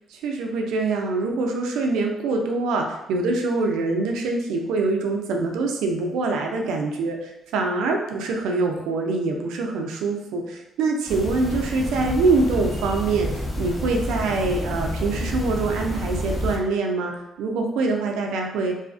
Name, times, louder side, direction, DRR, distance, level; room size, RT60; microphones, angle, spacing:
voice 1, 0.1-13.3 13.6-17.1 17.4-18.7, right 3 dB, 90° right, 2 dB, 0.3 m, -24 dB
sound 1, 11.1-16.6, equal, 20° left, 0.7 m, -29 dB
2.4 x 2.3 x 2.4 m, 0.92 s
cardioid pair, 90°, 0 cm